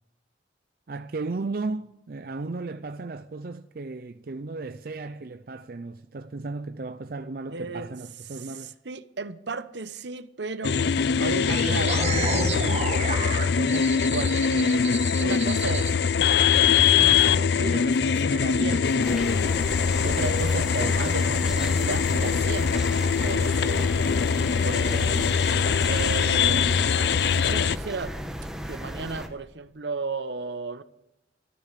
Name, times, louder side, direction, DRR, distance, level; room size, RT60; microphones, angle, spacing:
voice 1, 0.9-8.7 24.7-25.3, right 3 dB, 50° right, 0.5 m, -35 dB
voice 2, 7.5-7.9 8.3-14.9 15.2-15.9 16.8-19.1 20.0-22.9 23.2-23.8 24.6-25.3 25.8-26.8 27.3-28.2 28.7-30.8, right 3 dB, 70° right, 0.9 m, -35 dB
sound 1, 10.6-27.8, left 6 dB, 60° left, 0.4 m, -23 dB
sound 2, 11.5-15.9, right 4 dB, 35° right, 1.8 m, -31 dB
sound 3, 19.0-29.3, equal, 5° right, 1.4 m, -35 dB
13.5 x 13.0 x 6.7 m
head